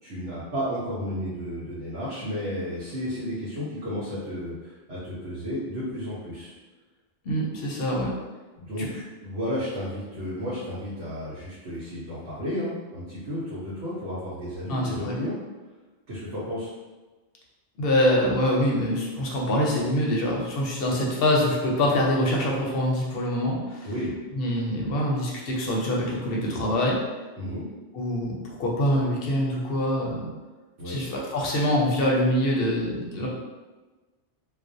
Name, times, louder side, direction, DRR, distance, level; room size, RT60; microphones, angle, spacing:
voice 1, 0.0-6.5 8.6-15.3 16.1-16.7 23.8-24.1 27.4-27.7 30.8-31.1, equal, 90° right, -10 dB, 1.0 m, -32 dB
voice 2, 7.2-8.1 8.8-8.9 14.7-15.1 17.8-23.9 24.3-27.0 27.9-30.3 30.8-33.3, left 1 dB, 65° left, -2 dB, 0.7 m, -25 dB
2.4 x 2.0 x 2.5 m, 1.2 s
omnidirectional pair, 1.1 m